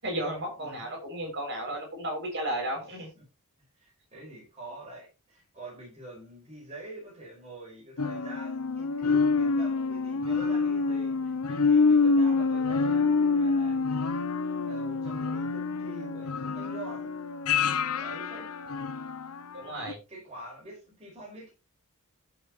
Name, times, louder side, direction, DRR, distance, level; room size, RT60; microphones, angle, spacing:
voice 1, 0.0-3.1 19.5-20.0, right 1 dB, 55° right, 0 dB, 7.3 m, -33 dB
voice 2, 0.6-0.9 3.2-3.3 3.8-13.8 14.5-17.2 17.5-18.5 20.1-21.5, right 2 dB, 30° right, -3 dB, 5.5 m, -46 dB
sound 1, 8.0-19.4 19.9-20.0, left 4 dB, 90° left, 0.9 m, -27 dB
13.0 x 8.2 x 3.2 m, 0.28 s
head